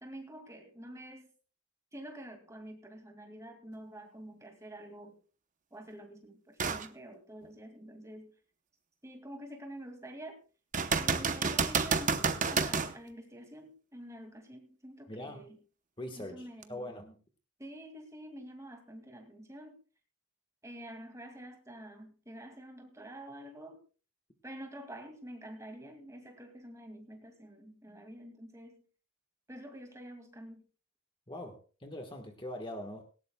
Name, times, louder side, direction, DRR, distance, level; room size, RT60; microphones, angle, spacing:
voice 1, 0.0-1.3 1.9-5.2 5.7-8.3 9.0-10.4 10.9-15.6 16.2-16.8 17.6-19.8 20.6-23.8 24.4-28.8 29.5-30.6, right 1 dB, 15° right, 5 dB, 2.3 m, -47 dB
sound 1, 6.6-6.9 7.4-7.5 10.7-12.9 16.6-16.7, right 5 dB, 35° right, 0.9 m, -29 dB
voice 2, 15.1-15.5 16.0-17.2 31.3-33.0, left 1 dB, 20° left, 5 dB, 1.4 m, -42 dB
18.0 x 17.5 x 2.3 m, 0.37 s
head